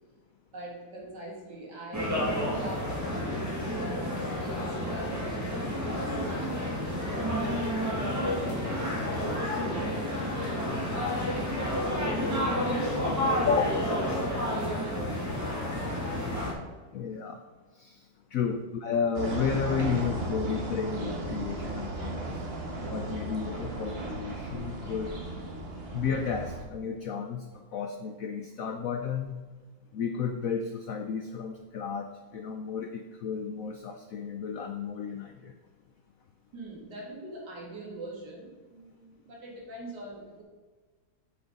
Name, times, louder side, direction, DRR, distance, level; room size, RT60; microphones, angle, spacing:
voice 1, 0.5-11.6 12.2-13.7 14.0-15.9 36.5-40.4, right 1 dB, 60° right, -4 dB, 3.1 m, -43 dB
sound 1, 1.9-16.5, left 1 dB, 10° right, 1.5 m, -30 dB
voice 2, 16.9-17.4 17.7-18.1 18.3-22.4 22.9-25.2 25.9-29.4 29.9-35.6, left 6 dB, 75° left, 6 dB, 0.8 m, -32 dB
sound 2, 19.1-26.6, right 2 dB, 35° right, 1.4 m, -36 dB
7.9 x 6.1 x 5.2 m, 1.4 s
omnidirectional pair, 2.0 m